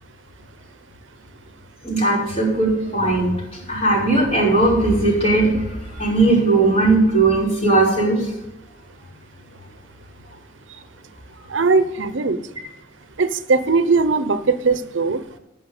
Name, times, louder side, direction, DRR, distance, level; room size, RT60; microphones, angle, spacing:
voice 1, 1.8-5.7 6.0-8.2, right 2 dB, 35° left, -6 dB, 5.6 m, -18 dB
voice 2, 11.5-12.4 13.2-15.2, right 4 dB, 85° right, 12 dB, 0.8 m, -19 dB
14.0 x 5.8 x 8.2 m, 0.91 s
head